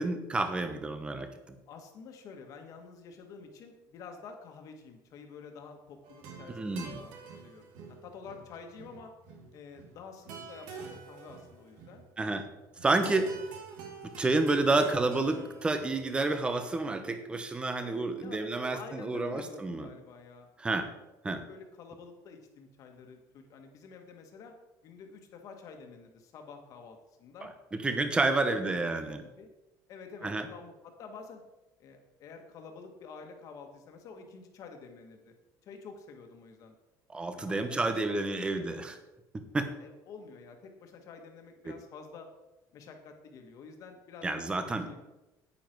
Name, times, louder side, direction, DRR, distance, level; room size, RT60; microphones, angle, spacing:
voice 1, 0.0-1.5 6.5-7.0 12.2-12.4 12.8-13.3 14.2-19.9 20.6-20.9 21.2-21.4 27.4-29.2 30.2-30.5 37.1-39.0 39.5-39.7 41.7-41.8 44.2-44.9, right 2 dB, 15° right, 9 dB, 0.9 m, -30 dB
voice 2, 1.7-7.1 7.4-7.7 8.0-9.1 9.5-12.0 17.8-18.4 18.7-20.5 21.5-24.5 24.8-27.5 28.0-28.1 28.4-29.5 29.9-31.4 31.8-35.3 35.6-36.8 37.3-38.7 39.8-42.3 42.7-45.1, left 5 dB, 50° left, 4 dB, 1.7 m, -49 dB
sound 1, 6.0-16.1, right 5 dB, 85° right, 2.3 m, -47 dB
9.9 x 9.5 x 4.6 m, 1.0 s
cardioid pair, 170°, 8 cm